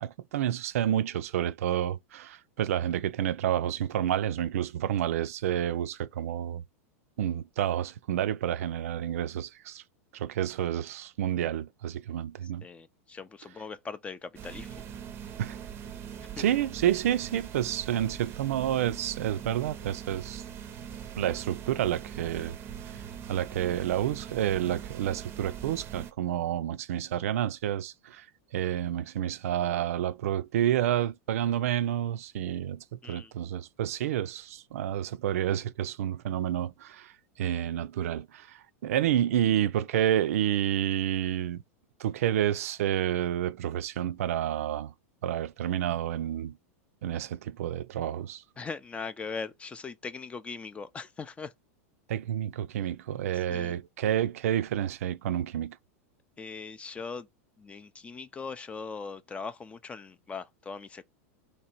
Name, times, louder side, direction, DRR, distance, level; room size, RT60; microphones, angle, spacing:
voice 1, 0.0-6.6 7.2-9.8 10.1-12.6 15.4-15.6 16.4-20.4 21.2-22.6 23.3-28.2 28.5-37.1 37.4-41.6 42.0-44.9 45.2-46.6 47.0-48.4 52.1-55.8, right 11 dB, 80° right, 0.4 m, -29 dB
voice 2, 12.4-14.8 16.4-16.5 33.0-33.3 48.6-51.5 53.3-53.8 56.4-57.3 57.6-61.0, left 5 dB, 15° left, 0.4 m, -40 dB
sound 1, 14.4-26.1, right 8 dB, 30° right, 0.6 m, -42 dB
3.2 x 2.7 x 4.4 m
hypercardioid pair, 125°, 8 cm